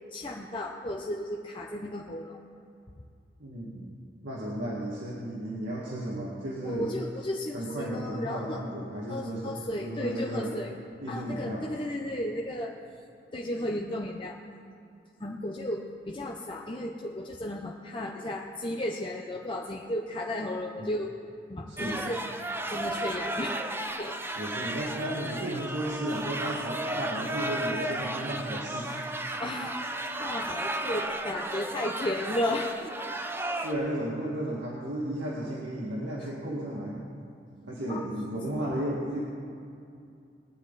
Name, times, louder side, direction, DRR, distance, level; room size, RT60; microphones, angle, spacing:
voice 1, 0.1-2.4 6.6-8.6 9.1-10.8 11.1-12.7 13.3-14.4 15.2-21.1 21.5-22.2 22.7-23.6 24.0-24.2 29.4-32.9 36.2-36.3 37.9-38.0, left 1 dB, 30° left, -1 dB, 0.7 m, -34 dB
voice 2, 3.4-6.9 7.5-10.5 11.0-11.7 20.8-20.9 21.7-22.0 24.4-28.9 33.6-37.0 37.7-39.2, right 1 dB, 85° right, -6 dB, 2.1 m, -34 dB
sound 1, 21.8-33.7, right 1 dB, 15° right, 0.7 m, -34 dB
22.0 x 9.5 x 4.1 m, 2.5 s
head